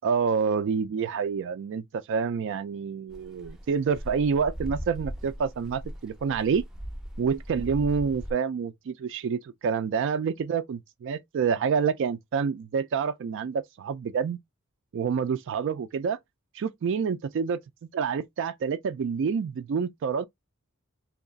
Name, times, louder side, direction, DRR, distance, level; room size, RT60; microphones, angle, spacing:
voice 1, 0.0-6.6 7.2-14.4 14.9-16.2 16.5-17.6 17.9-20.3, right 6 dB, 60° right, 0.3 m, -28 dB
sound 1, 3.1-8.3, equal, 5° right, 0.5 m, -39 dB
2.9 x 2.3 x 3.9 m
head